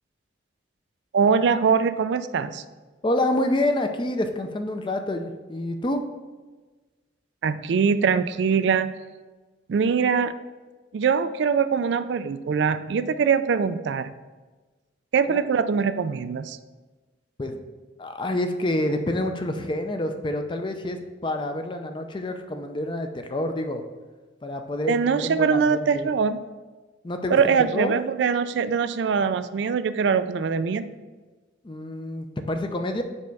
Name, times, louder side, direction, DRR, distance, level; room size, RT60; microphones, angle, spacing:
voice 1, 1.1-2.6 7.4-8.9 9.7-10.3 10.9-14.1 15.1-16.6 24.9-26.4 27.3-30.9, right 6 dB, 70° right, 12 dB, 0.3 m, -22 dB
voice 2, 3.0-6.0 15.3-15.4 17.4-17.6 18.0-23.8 24.4-26.1 27.0-27.4 27.7-27.9 31.6-33.0, left 1 dB, 25° left, 6 dB, 0.5 m, -27 dB
5.3 x 4.6 x 5.3 m, 1.3 s
head